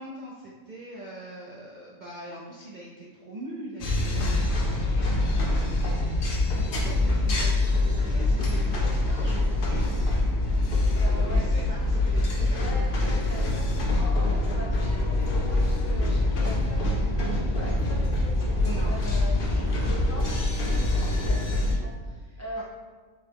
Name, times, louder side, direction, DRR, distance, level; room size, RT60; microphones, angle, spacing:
voice 1, 0.0-10.4 10.8-12.6 18.6-18.9 21.0-21.2 22.3-22.6, right 2 dB, 60° right, -5 dB, 0.4 m, -42 dB
sound 1, 3.8-21.7, left 2 dB, 50° left, 0.7 m, -25 dB
voice 2, 10.9-11.5 12.5-19.5 19.8-22.6, left 1 dB, 15° left, -5 dB, 0.5 m, -41 dB
6.3 x 2.2 x 3.4 m, 1.5 s
omnidirectional pair, 1.4 m